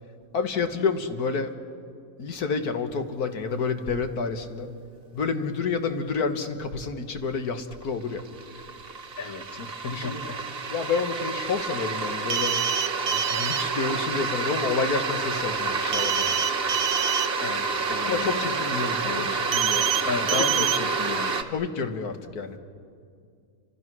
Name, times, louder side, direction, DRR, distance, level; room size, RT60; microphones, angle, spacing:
voice 1, 0.3-1.5 2.2-4.7 5.1-8.2 9.9-10.3 10.7-12.6 13.3-16.4 18.0-19.9 20.3-20.7 21.5-22.6, left 5 dB, 90° left, 7 dB, 2.0 m, -29 dB
sound 1, 7.3-7.4 7.7-21.4, right 4 dB, 45° right, 1.3 m, -29 dB
voice 2, 9.2-10.4 17.4-18.6 19.0-19.4 20.0-21.4, left 4 dB, 70° left, 6 dB, 1.9 m, -34 dB
sound 2, 12.3-13.6 15.9-17.3 19.5-20.0 20.3-20.8, right 9 dB, 80° right, 1.3 m, -26 dB
29.5 x 26.0 x 6.2 m, 2.3 s
omnidirectional pair, 1.6 m